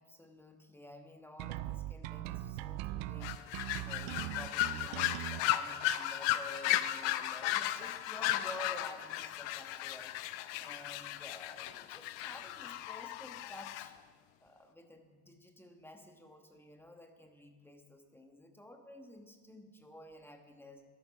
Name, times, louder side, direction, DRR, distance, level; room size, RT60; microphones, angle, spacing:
voice 1, 0.0-14.0 14.4-20.8, left 1 dB, 5° left, 5 dB, 1.3 m, -52 dB
sound 1, 1.4-5.4, right 15 dB, 75° right, 0.7 m, -40 dB
sound 2, 3.2-13.9, left 13 dB, 70° left, 0.8 m, -35 dB
13.0 x 12.0 x 5.9 m, 1.5 s
cardioid pair, 135°, 46 cm